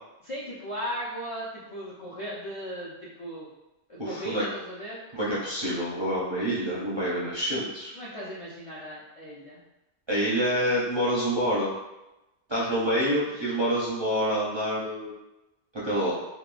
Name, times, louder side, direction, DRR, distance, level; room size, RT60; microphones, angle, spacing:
voice 1, 0.2-3.5 3.9-5.0 7.9-9.6 13.0-13.5, equal, 50° left, -8 dB, 0.4 m, -37 dB
voice 2, 4.0-4.4 5.1-7.9 10.1-11.7 12.5-15.1 15.7-16.1, equal, 35° right, -9 dB, 0.4 m, -27 dB
2.9 x 2.2 x 2.4 m, 0.97 s
omnidirectional pair, 1.2 m